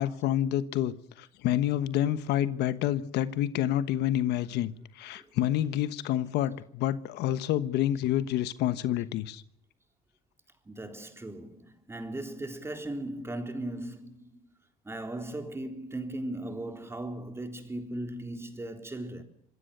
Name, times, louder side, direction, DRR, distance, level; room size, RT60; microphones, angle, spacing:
voice 1, 0.0-9.4, left 12 dB, 85° left, 1.2 m, -28 dB
voice 2, 10.7-14.5 14.8-19.2, right 1 dB, 15° right, 3.8 m, -38 dB
26.5 x 19.5 x 6.8 m
cardioid pair, 110°, 17 cm